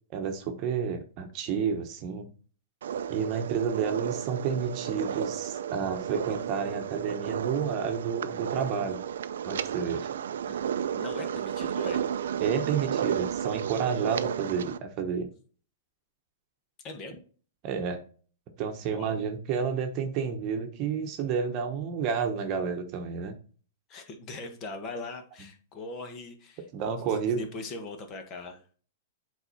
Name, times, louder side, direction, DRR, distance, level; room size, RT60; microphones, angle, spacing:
voice 1, 0.1-2.3 3.1-9.0 9.4-10.1 12.4-15.3 17.6-18.0 18.6-23.4 26.7-27.4, right 6 dB, 35° right, 5 dB, 1.2 m, -30 dB
sound 1, 2.8-14.8, right 8 dB, 80° right, 0.5 m, -32 dB
voice 2, 10.9-12.0 16.8-17.2 18.9-19.3 23.9-28.6, left 3 dB, 30° left, 5 dB, 1.5 m, -41 dB
8.0 x 4.2 x 4.2 m, 0.41 s
hypercardioid pair, 150°, 0 cm